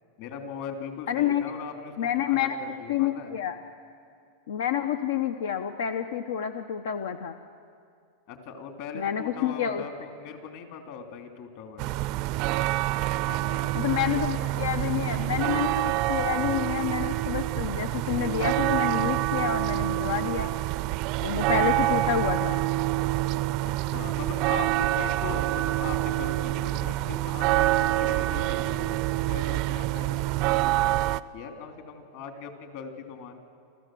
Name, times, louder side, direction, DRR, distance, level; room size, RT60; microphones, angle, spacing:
voice 1, 0.2-3.4 8.3-12.0 13.2-15.0 23.6-29.0 29.3-31.0 31.3-33.4, left 6 dB, 55° left, 4 dB, 2.8 m, -40 dB
voice 2, 1.1-1.4 2.0-2.6 2.9-3.6 4.5-7.3 8.9-9.8 13.7-20.5 21.2-22.6, left 9 dB, 90° left, 8 dB, 0.9 m, -28 dB
sound 1, 11.8-31.2, right 17 dB, 45° right, 0.4 m, -26 dB
28.0 x 14.5 x 7.7 m, 2.4 s
supercardioid pair, 150°, 0 cm